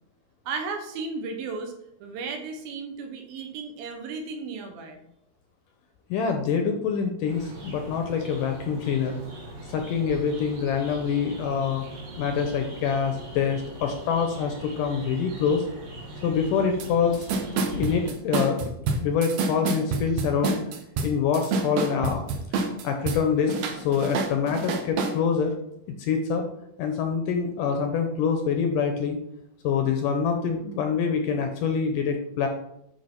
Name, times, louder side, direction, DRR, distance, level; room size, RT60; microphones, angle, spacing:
voice 1, 0.5-1.7 2.0-5.0, right 4 dB, 75° right, 4 dB, 2.8 m, -34 dB
voice 2, 6.1-9.2 9.7-11.8 12.2-15.6 16.2-17.3 17.7-18.6 19.0-20.6 21.0-22.3 22.7-25.6 26.0-26.4 26.8-29.2 29.6-32.5, left 6 dB, 75° left, 4 dB, 2.1 m, -25 dB
sound 1, 7.3-18.1, right 1 dB, 40° right, 2.9 m, -41 dB
sound 2, 16.8-16.9 17.1-23.2 23.5-25.2, right 4 dB, 90° right, 1.4 m, -27 dB
10.5 x 4.8 x 4.5 m, 0.78 s
omnidirectional pair, 4.5 m